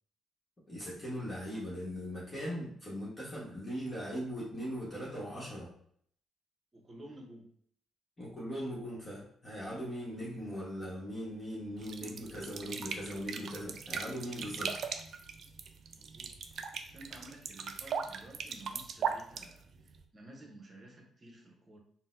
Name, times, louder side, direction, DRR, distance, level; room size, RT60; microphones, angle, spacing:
voice 1, 0.7-5.7 8.2-14.8, equal, 25° left, -7 dB, 1.1 m, -40 dB
voice 2, 6.7-7.5 15.9-16.3 16.8-21.8, right 1 dB, 35° right, 1 dB, 0.8 m, -53 dB
sound 1, 11.8-20.0, right 6 dB, 60° right, 0.3 m, -39 dB
3.8 x 2.1 x 2.5 m, 0.64 s
cardioid pair, 90°, 0 cm